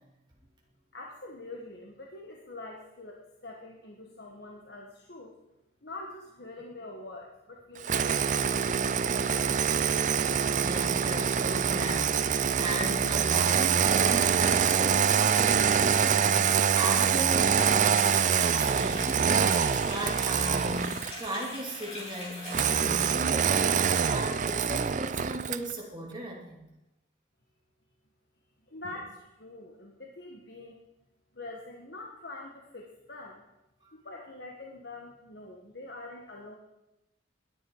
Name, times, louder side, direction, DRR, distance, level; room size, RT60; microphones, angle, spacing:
voice 1, 0.9-5.3 5.8-9.6 28.7-30.8 31.3-33.5 33.9-36.5, left 2 dB, 55° left, 0 dB, 1.5 m, -45 dB
Engine starting, 7.8-21.2 22.5-25.7, right 7 dB, 40° right, 0.4 m, -25 dB
voice 2, 10.5-26.7, right 1 dB, 20° right, -2 dB, 2.7 m, -37 dB
sound 1, 17.8-22.8, left 1 dB, 30° left, 5.8 m, -42 dB
21.0 x 10.0 x 4.8 m, 0.95 s
head